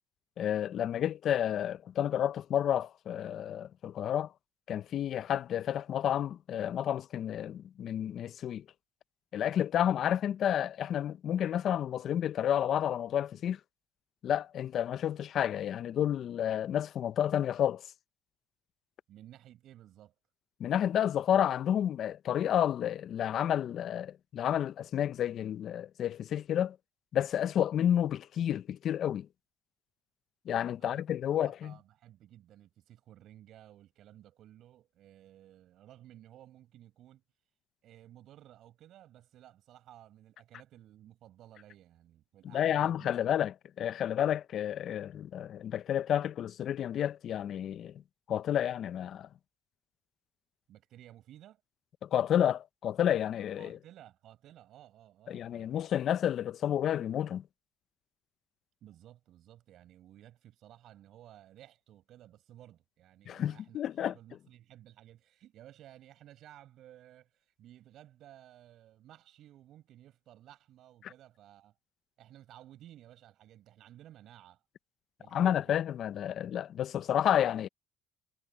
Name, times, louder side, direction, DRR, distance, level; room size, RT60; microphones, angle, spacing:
voice 1, 0.4-4.3 4.7-8.6 9.3-13.6 14.2-17.8 20.6-26.8 27.1-29.3 30.5-31.7 42.5-47.9 48.3-49.3 52.0-53.8 55.3-57.4 63.3-64.1 75.3-77.7, left 10 dB, 55° left, 0.6 m, -30 dB
voice 2, 19.1-20.1 30.8-37.2 37.8-43.2 50.7-51.6 53.6-56.0 58.8-71.7 72.2-74.6 75.2-75.8, right 12 dB, 65° right, 7.4 m, -55 dB
cardioid pair, 105°, 0 cm